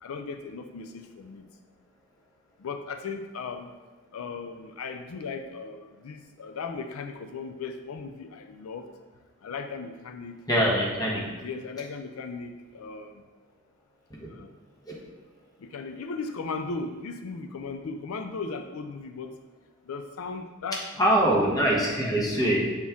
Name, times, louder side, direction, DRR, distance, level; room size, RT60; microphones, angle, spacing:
voice 1, 0.0-1.5 2.6-3.7 4.1-8.9 9.4-10.4 10.9-13.2 14.3-14.5 15.6-19.3 19.9-20.8 22.1-22.6, left 4 dB, 90° left, 7 dB, 0.4 m, -37 dB
voice 2, 10.5-11.3 14.9-15.0 21.0-22.8, right 1 dB, 20° left, -3 dB, 1.2 m, -23 dB
7.2 x 4.3 x 3.5 m, 1.3 s
head